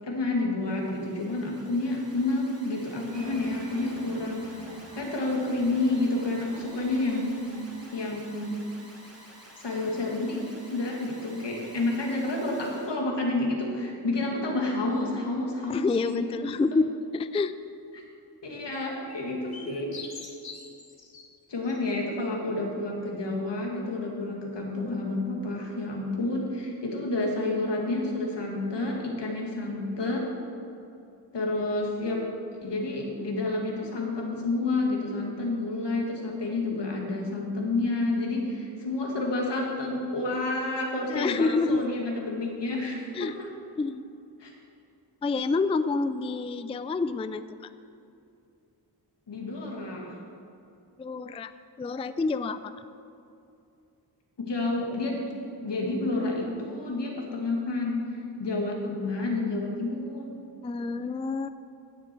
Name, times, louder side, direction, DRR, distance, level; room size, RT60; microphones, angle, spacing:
voice 1, 0.0-7.3 7.9-8.6 9.5-16.2 17.9-18.0 18.4-19.9 21.5-30.3 31.3-32.3 32.6-43.3 44.4-44.5 49.3-50.2 54.4-55.2 55.6-60.3, left 2 dB, 80° left, -1 dB, 2.2 m, -29 dB
Alarm, 0.6-13.0, equal, 35° right, 2.9 m, -51 dB
Applause, 3.1-8.2, right 1 dB, 80° right, 2.2 m, -48 dB
voice 2, 15.7-16.9 17.1-17.5 41.1-41.9 43.1-43.4 43.8-44.0 45.2-47.4 51.0-51.5 51.8-52.7 60.6-61.5, left 3 dB, 15° left, 12 dB, 0.3 m, -28 dB
sound 1, 18.6-21.2 21.6-21.8, left 4 dB, 60° left, 1.6 m, -44 dB
16.0 x 7.5 x 4.5 m, 2.5 s
wide cardioid pair, 70°, 42 cm